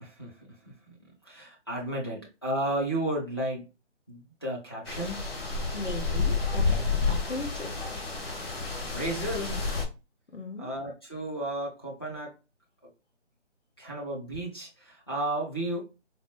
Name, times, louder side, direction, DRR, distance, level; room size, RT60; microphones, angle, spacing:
voice 1, 0.0-0.3 0.9-3.7 4.1-5.2 8.6-9.6 10.6-12.3 13.8-15.8, right 1 dB, 20° left, 0.5 m, -33 dB
sound 1, 4.9-9.8, left 4 dB, 55° left, 1.4 m, -30 dB
voice 2, 5.7-7.7 10.3-10.7, left 2 dB, 90° left, 1.2 m, -37 dB
4.0 x 2.1 x 3.0 m
figure-of-eight pair, 160°, 36 cm